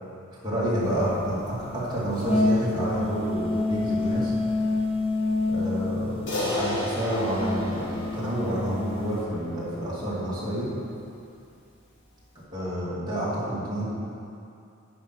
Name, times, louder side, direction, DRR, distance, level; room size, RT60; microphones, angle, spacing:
voice 1, 0.4-4.3 5.5-10.7 12.5-13.9, equal, 20° right, -9 dB, 2.4 m, -29 dB
sound 1, 0.8-9.2, left 2 dB, 30° left, 0.9 m, -28 dB
Crash cymbal, 6.3-10.8, left 1 dB, 65° left, 1.6 m, -33 dB
9.3 x 5.5 x 5.9 m, 2.6 s
head